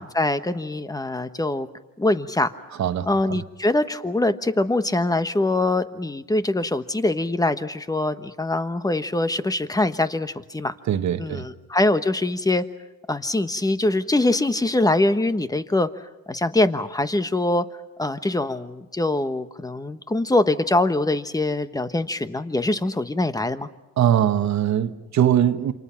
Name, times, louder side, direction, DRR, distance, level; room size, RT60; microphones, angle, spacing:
voice 1, 0.0-1.7 2.0-2.5 3.1-10.7 11.2-12.6 13.1-15.9 16.3-17.6 18.0-23.7, left 2 dB, 10° left, 1.2 m, -23 dB
voice 2, 2.8-3.4 10.9-11.5 24.0-25.7, right 10 dB, 65° right, 1.4 m, -21 dB
28.5 x 26.5 x 5.9 m
cardioid pair, 90°, 30 cm